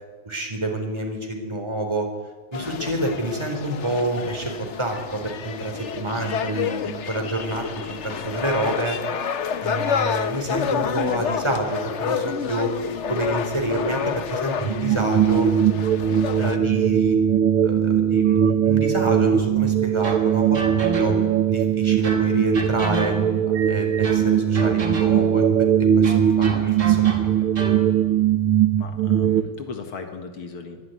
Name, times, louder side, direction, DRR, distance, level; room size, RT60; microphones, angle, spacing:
voice 1, 0.2-2.1 2.5-9.0 9.6-12.7 13.1-15.5 16.4-17.2 17.6-20.6 21.0-21.1 21.5-23.1 23.5-27.3, right 1 dB, 10° right, 2 dB, 4.0 m, -28 dB
sound 1, 2.5-16.6, left 7 dB, 55° left, 0.8 m, -29 dB
sound 2, 14.6-29.4, right 9 dB, 75° right, 1.9 m, -20 dB
sound 3, 20.0-21.4 22.0-23.5 24.0-25.4 26.0-27.9, right 1 dB, 50° right, 3.6 m, -32 dB
voice 2, 28.8-30.8, left 5 dB, 75° left, 6 dB, 2.6 m, -37 dB
22.5 x 12.5 x 9.7 m, 1.4 s
omnidirectional pair, 2.4 m